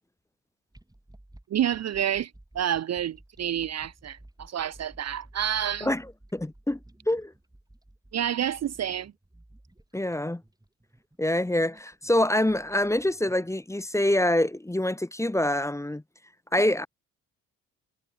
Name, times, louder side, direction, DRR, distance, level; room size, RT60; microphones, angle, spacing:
sound 1, 0.7-13.8, right 1 dB, 10° right, 6.6 m, -54 dB
voice 1, 1.5-5.9 8.1-9.1, right 10 dB, 40° right, 0.6 m, -29 dB
voice 2, 6.3-6.8 7.1-7.3 9.9-10.4 11.2-16.0 16.5-16.9, left 1 dB, 5° left, 1.0 m, -25 dB
hypercardioid pair, 50°, 40 cm